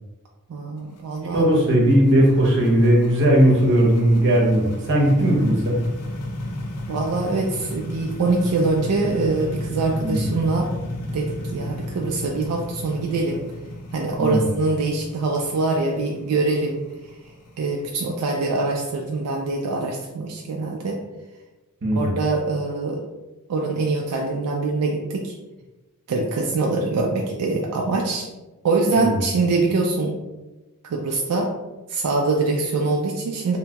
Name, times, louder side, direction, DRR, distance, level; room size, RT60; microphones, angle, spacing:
voice 1, 0.5-1.5 6.9-10.7 11.1-13.4 13.9-16.8 17.6-21.0 22.0-23.0 23.5-25.3 26.1-28.3 28.6-30.2 30.9-31.5 31.9-33.6, right 3 dB, 85° right, 0 dB, 0.3 m, -24 dB
sound 1, 0.8-19.5, left 1 dB, 85° left, 0.5 m, -34 dB
voice 2, 1.3-5.8 10.0-10.3 14.2-14.4 21.8-22.1 28.9-29.2, right 1 dB, 55° right, -2 dB, 0.8 m, -18 dB
2.7 x 2.2 x 2.8 m, 1.1 s
head